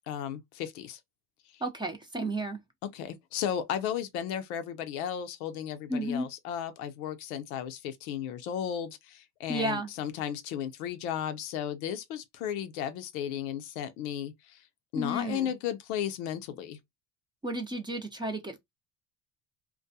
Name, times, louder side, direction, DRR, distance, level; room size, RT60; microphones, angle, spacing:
voice 1, 0.1-1.0 1.5-1.6 2.8-14.6 14.9-16.8, left 9 dB, 90° left, 0.6 m, -34 dB
voice 2, 1.6-2.6 5.9-6.3 9.5-9.9 14.9-15.5 17.4-18.7, right 1 dB, 10° right, 0.6 m, -32 dB
2.3 x 2.2 x 2.7 m
supercardioid pair, 85°, 42 cm